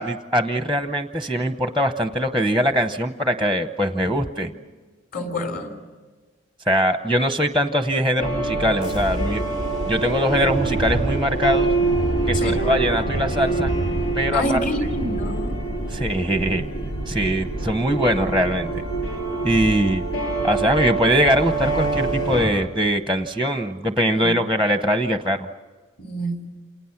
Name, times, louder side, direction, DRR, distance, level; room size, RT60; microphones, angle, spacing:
voice 1, 0.0-4.5 6.7-9.4 9.9-11.7 12.3-13.7 14.2-14.6 15.9-18.7 19.4-20.0 20.4-25.5, equal, ahead, 8 dB, 0.8 m, -22 dB
voice 2, 5.1-5.7 12.3-12.6 14.3-15.5 24.2-24.4 26.0-26.4, left 1 dB, 45° left, 5 dB, 3.7 m, -27 dB
sound 1, 8.2-22.5, right 2 dB, 80° left, 7.7 m, -25 dB
29.0 x 28.0 x 5.9 m, 1.4 s
head